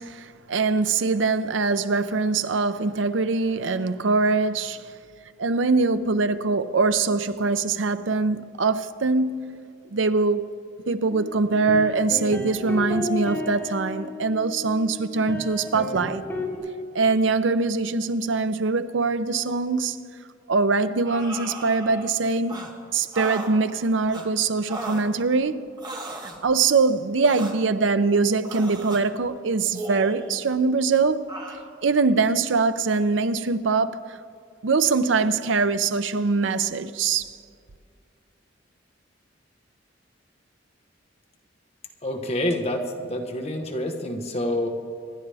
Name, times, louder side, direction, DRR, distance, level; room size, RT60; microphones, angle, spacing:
voice 1, 0.0-4.9 5.4-9.6 9.9-10.5 10.9-16.2 16.9-20.0 20.5-22.6 22.9-25.7 26.4-31.3 31.8-34.2 34.6-37.4, right 4 dB, 75° right, 0.6 m, -23 dB
sound 1, 11.1-16.6, left 1 dB, 10° left, 2.2 m, -33 dB
sound 2, 21.0-22.1 22.5-22.7 23.1-23.5 24.1-24.3 24.7-25.1 25.8-26.4 27.2-27.6 28.4-29.0 29.7-30.5 31.3-31.6, right 2 dB, 20° right, 1.5 m, -36 dB
voice 2, 42.0-44.7, left 1 dB, 35° left, 1.2 m, -27 dB
25.5 x 11.5 x 3.4 m
head